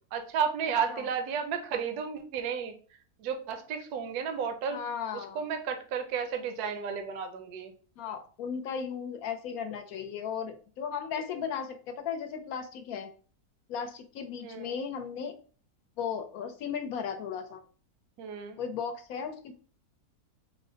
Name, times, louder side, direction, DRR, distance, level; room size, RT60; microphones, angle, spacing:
voice 1, 0.1-2.7 3.2-4.8 5.1-7.7 14.4-14.7 18.2-18.6, right 6 dB, 80° right, 7 dB, 1.1 m, -33 dB
voice 2, 4.7-5.4 8.0-13.1 13.7-15.3 16.0-17.6 18.6-19.5, left 7 dB, 75° left, 7 dB, 1.0 m, -36 dB
4.8 x 2.0 x 3.7 m, 0.40 s
omnidirectional pair, 1.7 m